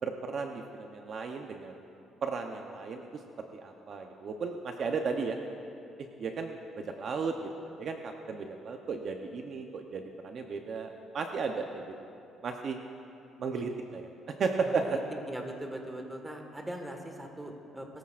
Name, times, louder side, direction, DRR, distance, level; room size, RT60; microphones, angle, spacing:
voice 1, 0.0-1.8 2.2-3.1 3.4-5.4 6.2-7.5 7.8-12.0 12.4-12.8 13.4-14.1 14.4-15.0, right 4 dB, 50° right, 4 dB, 0.8 m, -34 dB
voice 2, 14.7-15.0 15.3-17.9, right 1 dB, 10° right, 3 dB, 1.6 m, -40 dB
22.0 x 14.5 x 2.5 m, 2.6 s
cardioid pair, 115°, 0 cm